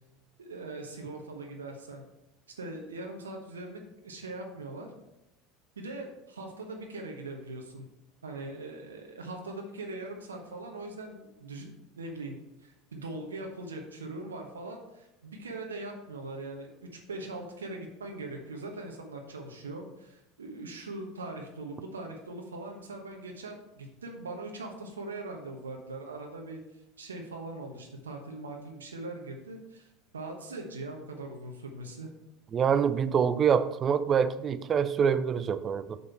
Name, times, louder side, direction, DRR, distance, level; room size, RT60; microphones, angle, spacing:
voice 1, 0.4-2.0 2.6-4.9 5.8-7.9 8.2-29.9 30.1-32.1, right 2 dB, 80° right, 2 dB, 1.0 m, -41 dB
voice 2, 32.5-36.0, right 7 dB, 35° right, 14 dB, 0.4 m, -25 dB
6.5 x 5.4 x 4.4 m, 0.91 s
figure-of-eight pair, 75°, 0 cm